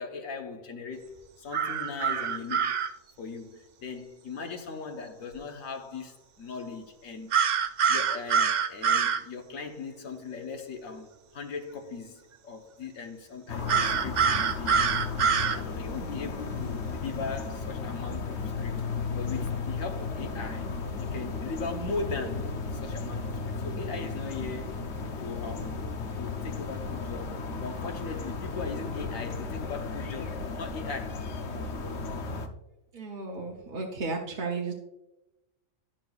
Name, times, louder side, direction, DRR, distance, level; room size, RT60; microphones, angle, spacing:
voice 1, 0.0-2.7 3.2-7.3 7.9-14.7 15.2-18.7 19.1-24.8 25.2-25.9 26.2-31.3, left 4 dB, 80° left, 1.4 m, -39 dB
sound 1, 1.5-2.9 7.3-9.2 13.7-15.6, right 7 dB, 85° right, 0.4 m, -25 dB
sound 2, 13.5-32.5, left 4 dB, 60° left, 1.0 m, -34 dB
voice 2, 32.9-34.7, right 3 dB, 45° right, 0.9 m, -34 dB
12.0 x 5.9 x 2.3 m
omnidirectional pair, 1.4 m